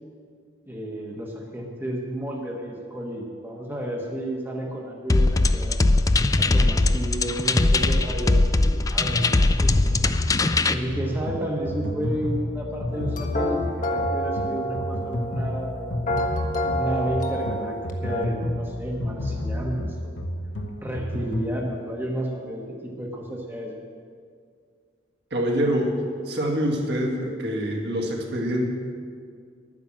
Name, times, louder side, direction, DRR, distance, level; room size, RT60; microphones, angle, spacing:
voice 1, 0.7-5.8 6.4-9.8 10.7-15.9 16.6-20.2 20.8-23.8, right 1 dB, 10° right, -1 dB, 1.2 m, -32 dB
sound 1, 5.1-10.7, left 2 dB, 20° left, 0.3 m, -20 dB
sound 2, 9.1-21.6, left 1 dB, 75° left, 1.3 m, -30 dB
sound 3, 12.9-18.3, equal, 45° left, 1.4 m, -29 dB
voice 2, 25.3-25.9 26.3-28.7, equal, 60° right, 0 dB, 2.0 m, -25 dB
11.0 x 9.7 x 7.5 m, 2.1 s
head